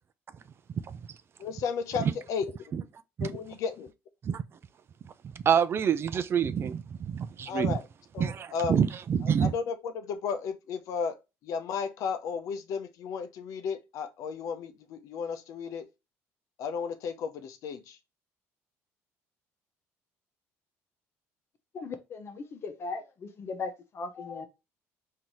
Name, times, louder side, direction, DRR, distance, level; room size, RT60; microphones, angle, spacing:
voice 1, 1.4-2.5 3.2-3.9 7.5-7.9 8.1-8.7 9.2-11.2 11.4-15.9 16.6-18.0, left 6 dB, 70° left, 0.6 m, -34 dB
voice 2, 5.5-7.8 8.2-9.5, right 7 dB, 45° right, 0.4 m, -27 dB
voice 3, 21.7-24.5, left 4 dB, 45° left, 0.9 m, -38 dB
3.8 x 2.8 x 3.0 m
cardioid pair, 100°, 6 cm